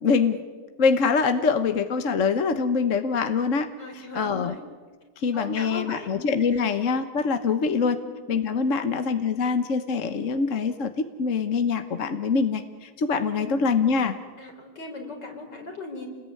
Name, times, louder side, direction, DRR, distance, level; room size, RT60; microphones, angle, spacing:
voice 1, 0.0-0.4 0.8-3.7 4.1-4.5 5.2-8.0 8.3-14.1, left 5 dB, 50° left, 9 dB, 1.4 m, -24 dB
voice 2, 3.8-4.6 5.3-6.2 6.5-6.6 7.8-8.1 8.7-9.0 13.2-13.6 14.4-16.1, left 2 dB, 75° left, 3 dB, 4.9 m, -38 dB
29.0 x 20.0 x 9.7 m, 1.4 s
omnidirectional pair, 1.9 m